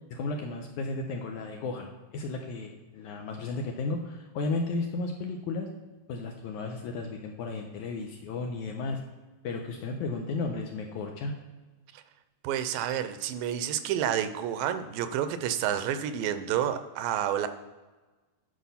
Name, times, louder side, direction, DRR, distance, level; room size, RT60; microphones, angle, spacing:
voice 1, 0.1-5.7 6.1-9.0 9.4-11.3, left 3 dB, 75° left, 3 dB, 1.9 m, -34 dB
voice 2, 12.4-17.5, right 10 dB, 80° right, 10 dB, 2.2 m, -29 dB
10.0 x 4.8 x 5.6 m, 1.2 s
omnidirectional pair, 4.1 m